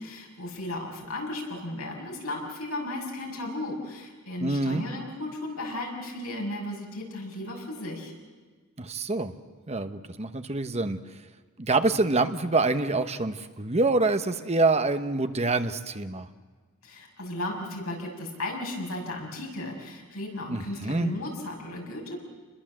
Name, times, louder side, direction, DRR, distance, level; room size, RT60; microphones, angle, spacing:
voice 1, 0.0-8.1 16.8-22.2, left 1 dB, 75° left, 0 dB, 6.5 m, -35 dB
voice 2, 4.4-4.8 8.8-9.4 9.7-11.0 11.6-16.3 20.5-21.1, right 3 dB, 30° right, 9 dB, 1.0 m, -26 dB
29.0 x 21.5 x 7.6 m, 1.4 s
head